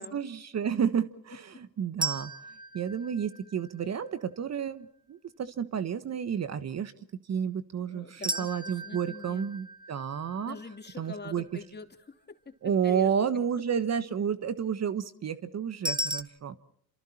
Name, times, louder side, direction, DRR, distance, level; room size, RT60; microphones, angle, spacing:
voice 1, 0.0-2.3 2.7-6.9 7.3-10.5 11.0-11.4 12.6-16.5, right 7 dB, 40° right, 12 dB, 1.3 m, -31 dB
sound 1, 2.0-4.1 8.2-11.3 15.9-16.2, right 1 dB, 10° right, 1.7 m, -36 dB
voice 2, 7.7-9.5 10.3-13.4, left 4 dB, 25° left, 5 dB, 3.0 m, -45 dB
29.0 x 27.0 x 4.4 m, 0.68 s
supercardioid pair, 90°, 40 cm